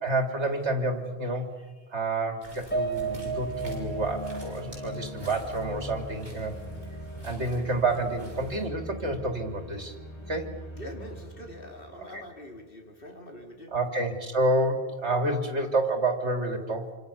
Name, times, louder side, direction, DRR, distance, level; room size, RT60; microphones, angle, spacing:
voice 1, 0.0-1.5 1.9-6.5 7.2-10.0 10.3-10.5 12.0-12.2 13.7-17.0, right 2 dB, 80° right, 6 dB, 3.1 m, -29 dB
sound 1, 2.4-8.7, right 1 dB, 40° right, 8.3 m, -49 dB
Piano, 2.7-7.2 7.6-7.7 8.1-8.2, right 4 dB, 10° left, 1.7 m, -35 dB
sound 2, 2.8-12.9, equal, 25° left, 4.2 m, -41 dB
voice 2, 10.8-13.8, left 1 dB, 55° left, 3 dB, 3.6 m, -44 dB
27.5 x 26.5 x 7.0 m, 1.4 s
omnidirectional pair, 1.1 m